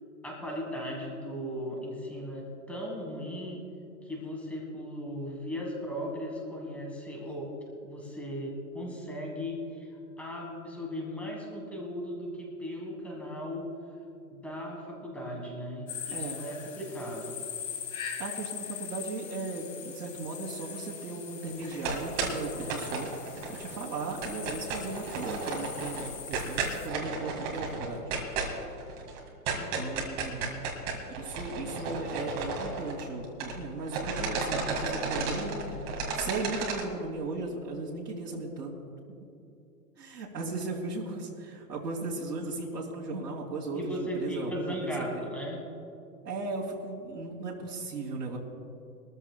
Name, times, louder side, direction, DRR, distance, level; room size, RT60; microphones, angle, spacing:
voice 1, 0.2-3.6 4.0-7.5 7.8-13.7 14.3-17.4 30.3-30.6 43.7-45.6, equal, 5° left, -1 dB, 1.5 m, -37 dB
sound 1, 15.9-26.9, left 8 dB, 55° left, 2.4 m, -41 dB
voice 2, 18.2-23.1 23.5-28.1 29.5-30.5 31.2-35.9 36.1-38.7 40.0-45.2 46.2-48.4, right 3 dB, 85° right, -5 dB, 3.0 m, -37 dB
sound 2, 21.6-23.8 24.0-33.6 33.9-36.8, right 4 dB, 20° right, 1.9 m, -33 dB
22.5 x 14.0 x 2.3 m, 2.6 s
hypercardioid pair, 160°, 50 cm